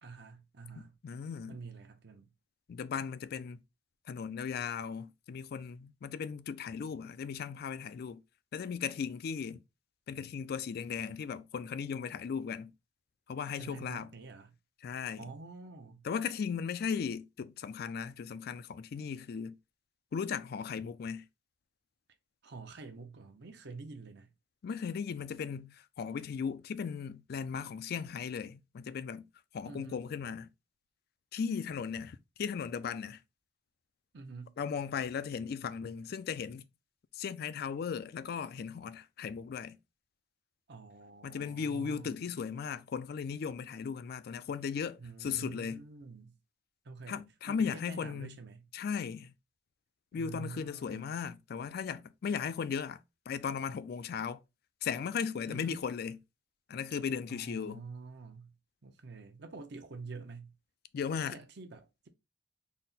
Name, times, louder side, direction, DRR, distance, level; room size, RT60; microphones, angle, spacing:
voice 1, 0.0-1.0 1.5-2.3 13.6-14.6 15.2-16.1 22.4-24.3 29.6-30.0 34.1-34.6 40.7-42.3 45.0-46.4 46.8-48.7 50.1-51.1 55.5-55.8 57.3-58.6 58.8-60.5 61.3-62.1, right 4 dB, 65° right, 0.7 m, -47 dB
voice 2, 0.8-1.6 2.7-3.6 4.1-8.2 8.5-9.6 10.1-12.7 13.3-14.1 14.8-15.2 16.0-19.6 20.1-21.2 24.6-29.3 29.5-30.5 31.3-33.2 34.6-36.6 37.1-39.8 41.2-45.8 47.1-48.4 48.7-49.3 50.1-53.0 53.3-54.4 54.8-56.2 56.7-57.8 60.9-61.4, left 6 dB, 55° left, 0.3 m, -37 dB
4.1 x 2.1 x 3.9 m
head